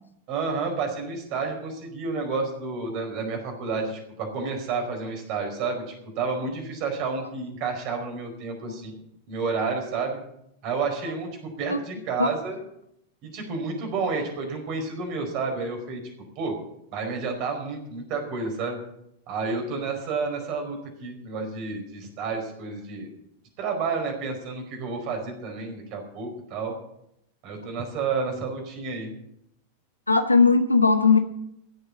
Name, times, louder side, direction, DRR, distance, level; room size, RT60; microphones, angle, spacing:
voice 1, 0.3-8.9 9.3-10.2 10.6-12.6 13.2-16.0 16.4-16.5 16.9-18.8 19.3-23.1 23.6-26.7 27.4-29.1, right 4 dB, 40° right, 3 dB, 4.7 m, -30 dB
voice 2, 30.1-31.2, left 4 dB, 80° left, 10 dB, 1.2 m, -18 dB
16.5 x 7.3 x 8.3 m, 0.77 s
figure-of-eight pair, 90°, 0 cm